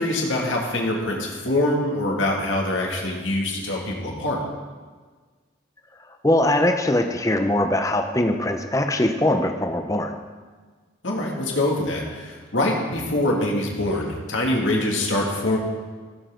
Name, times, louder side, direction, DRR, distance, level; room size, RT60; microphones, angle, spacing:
voice 1, 0.0-4.4 11.0-15.6, left 1 dB, 85° left, -1 dB, 2.2 m, -24 dB
voice 2, 6.2-10.2, left 1 dB, 15° left, 5 dB, 0.6 m, -21 dB
16.0 x 7.2 x 3.8 m, 1.4 s
head